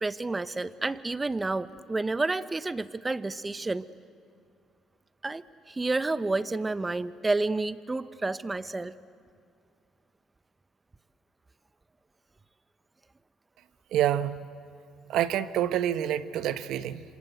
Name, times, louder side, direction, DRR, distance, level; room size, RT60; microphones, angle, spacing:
voice 1, 0.0-3.8 5.2-8.9, right 3 dB, 20° right, 14 dB, 1.1 m, -30 dB
voice 2, 13.9-14.4 15.1-17.0, right 11 dB, 70° right, 13 dB, 1.1 m, -27 dB
28.0 x 26.5 x 8.1 m, 2.4 s
hypercardioid pair, 60°, 0 cm